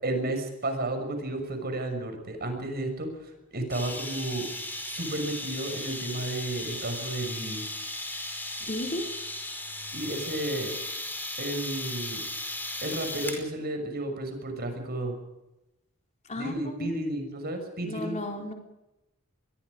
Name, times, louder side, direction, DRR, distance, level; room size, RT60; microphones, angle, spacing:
voice 1, 0.0-4.5 4.8-7.6 9.9-10.7 11.4-12.2 12.8-15.2 16.3-18.2, right 1 dB, 50° right, 5 dB, 6.3 m, -32 dB
sound 1, 3.7-13.5, left 2 dB, 10° left, 5.0 m, -36 dB
voice 2, 8.7-9.1 16.3-16.5 16.8-17.0 17.8-18.5, left 1 dB, 35° left, 2 dB, 3.9 m, -33 dB
26.0 x 21.5 x 5.2 m, 0.94 s
head